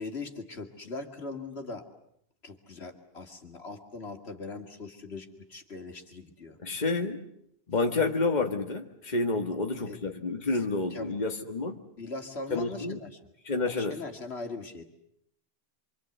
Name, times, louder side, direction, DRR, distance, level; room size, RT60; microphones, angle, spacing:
voice 1, 0.0-1.9 2.4-6.6 9.9-10.0 10.5-10.6 10.9-11.1 12.0-13.2 13.6-14.8, left 3 dB, 80° left, 4 dB, 2.7 m, -40 dB
voice 2, 6.6-7.2 7.7-11.8 12.5-13.0 13.5-14.0, left 3 dB, 45° left, 3 dB, 1.9 m, -29 dB
26.5 x 25.5 x 8.1 m, 0.73 s
omnidirectional pair, 1.1 m